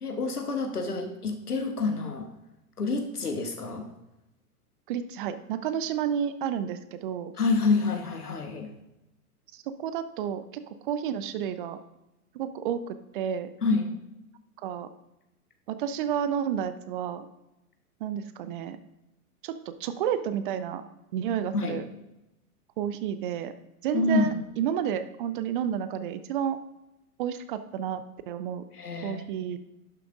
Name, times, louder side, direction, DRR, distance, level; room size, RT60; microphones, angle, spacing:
voice 1, 0.0-2.3 2.8-3.9 7.4-8.7 13.6-13.9 21.5-21.8 23.9-24.3 28.7-29.2, left 3 dB, 85° left, 6 dB, 1.3 m, -27 dB
voice 2, 4.9-7.3 9.5-11.8 12.3-13.5 14.6-14.9 15.7-17.3 18.0-18.8 19.4-20.8 21.1-21.8 22.8-23.5 23.8-26.6 27.2-28.6 29.0-29.6, right 9 dB, 35° right, 12 dB, 0.5 m, -31 dB
11.5 x 6.8 x 2.5 m, 0.93 s
figure-of-eight pair, 100°, 45 cm